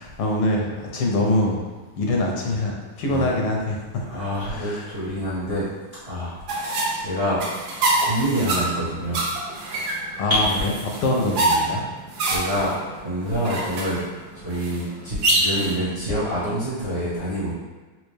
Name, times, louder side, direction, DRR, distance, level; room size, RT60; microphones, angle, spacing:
voice 1, 0.0-1.6 2.0-4.8 10.2-10.5 11.0-11.8, left 2 dB, 80° left, -1 dB, 1.5 m, -24 dB
voice 2, 4.0-5.7 6.0-7.4 8.0-9.2 12.2-14.0 14.3-17.5, equal, 40° right, -11 dB, 0.8 m, -27 dB
sound 1, 6.5-15.7, right 2 dB, 70° right, 0.9 m, -26 dB
4.4 x 2.4 x 3.1 m, 1.3 s
omnidirectional pair, 2.4 m